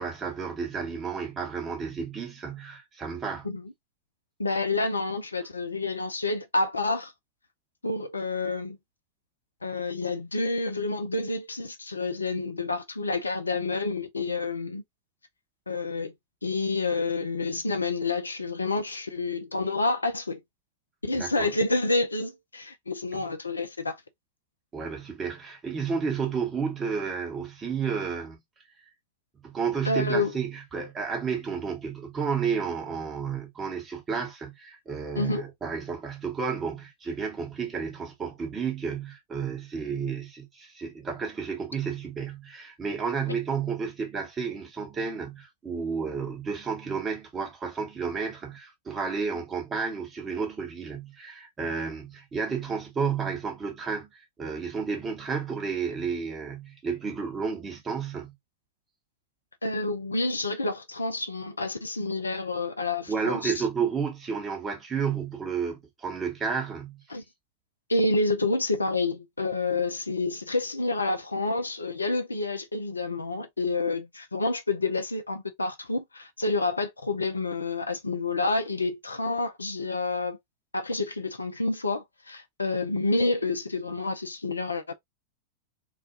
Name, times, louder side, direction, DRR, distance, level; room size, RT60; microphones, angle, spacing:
voice 1, 0.0-3.5 21.1-21.5 24.7-28.4 29.4-54.1 54.4-58.3 63.1-67.0, right 6 dB, 20° right, 1.0 m, -31 dB
voice 2, 4.4-7.1 7.8-8.8 9.6-14.8 15.7-16.1 16.4-20.4 21.0-24.0 29.8-30.3 35.2-35.4 59.6-63.6 67.1-67.2 67.9-80.4 80.7-84.9, left 3 dB, 80° left, 0.4 m, -28 dB
2.4 x 2.2 x 2.7 m
figure-of-eight pair, 90°, 0 cm